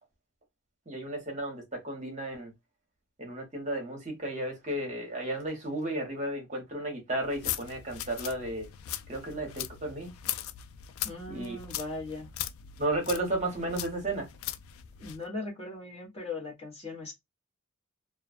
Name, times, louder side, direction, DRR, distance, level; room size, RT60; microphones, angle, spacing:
voice 1, 0.9-2.5 3.2-8.7 9.1-10.1 11.3-11.6 12.8-14.3, right 1 dB, 35° right, 0.9 m, -33 dB
sound 1, 7.2-15.2, left 11 dB, 85° left, 0.3 m, -39 dB
voice 2, 11.0-12.3 15.0-17.1, left 3 dB, 30° left, 1.1 m, -39 dB
2.3 x 2.3 x 2.3 m
head